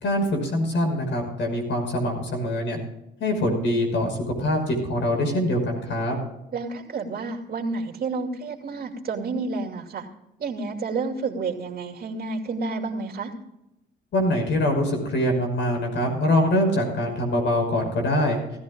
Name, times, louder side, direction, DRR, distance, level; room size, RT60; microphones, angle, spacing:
voice 1, 0.0-2.8 3.2-6.2 14.1-18.4, left 1 dB, 70° left, 3 dB, 5.5 m, -24 dB
voice 2, 6.5-10.1 10.4-13.3, right 4 dB, 50° right, 1 dB, 2.7 m, -30 dB
19.0 x 14.0 x 2.5 m, 0.90 s
cardioid pair, 90°, 20 cm